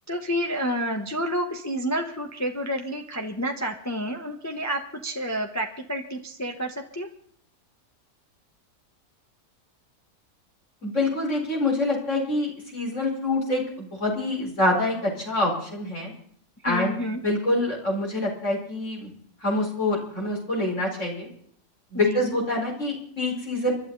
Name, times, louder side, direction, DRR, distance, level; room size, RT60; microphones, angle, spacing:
voice 1, 0.1-7.1 16.7-17.2 21.9-22.4, equal, 10° left, 3 dB, 1.2 m, -29 dB
voice 2, 10.8-16.1 16.6-16.9 17.2-19.1 19.4-21.3 21.9-23.7, left 2 dB, 50° left, -2 dB, 5.1 m, -26 dB
29.0 x 12.0 x 4.0 m, 0.65 s
omnidirectional pair, 1.6 m